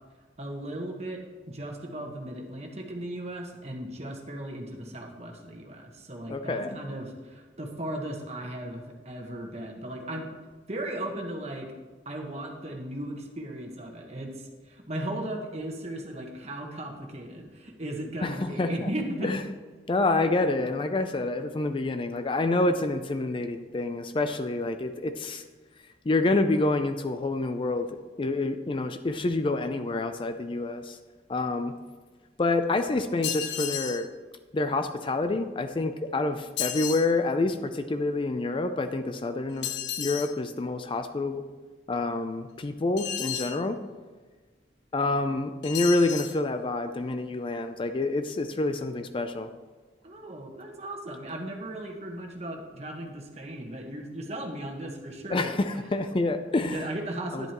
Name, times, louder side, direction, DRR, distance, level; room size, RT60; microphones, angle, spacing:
voice 1, 0.4-1.2 1.5-10.3 10.7-11.7 12.0-19.3 50.0-55.5 56.7-57.5, right 1 dB, 40° right, 2 dB, 1.4 m, -36 dB
voice 2, 6.3-6.8 18.2-18.9 19.2-19.4 19.9-25.4 26.1-27.9 28.2-31.0 31.3-31.7 32.4-34.1 34.5-39.7 40.0-41.4 41.9-43.8 44.9-49.5 55.3-56.9 57.3-57.5, left 2 dB, 30° left, 9 dB, 0.4 m, -27 dB
sound 1, 33.2-34.0 36.6-37.1 39.6-40.3 43.0-43.6 45.6-46.4, left 10 dB, 80° left, 0.7 m, -33 dB
11.0 x 10.5 x 3.0 m, 1.4 s
head